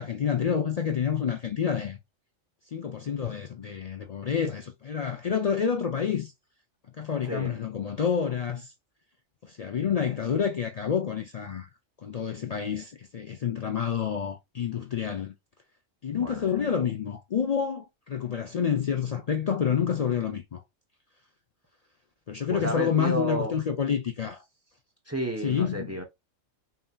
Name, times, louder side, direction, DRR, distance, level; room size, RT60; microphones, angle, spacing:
voice 1, 0.0-2.0 2.7-6.3 7.0-8.7 9.4-11.7 12.0-15.3 16.0-20.6 22.3-24.4 25.4-25.9, left 7 dB, 85° left, 0.3 m, -28 dB
voice 2, 7.2-7.5 16.1-16.5 22.5-23.6 25.1-26.0, right 1 dB, 20° right, 0.5 m, -31 dB
5.7 x 2.7 x 2.3 m
omnidirectional pair, 1.3 m